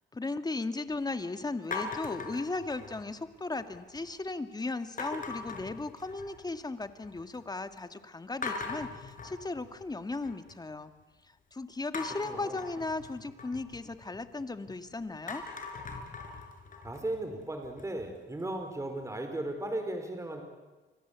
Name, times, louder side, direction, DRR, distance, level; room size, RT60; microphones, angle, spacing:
voice 1, 0.1-10.9 11.2-15.4, left 3 dB, 20° left, 9 dB, 2.0 m, -36 dB
sound 1, 1.7-3.2 3.6-4.1 5.0-6.5 6.8-7.4 7.8-7.9 8.4-10.5 11.9-14.7 15.1-18.0, left 4 dB, 40° left, 5.3 m, -41 dB
voice 2, 12.2-12.6 16.8-20.4, right 1 dB, 15° right, 5 dB, 4.5 m, -36 dB
29.5 x 24.0 x 8.3 m, 1.2 s
cardioid pair, 90°, 20 cm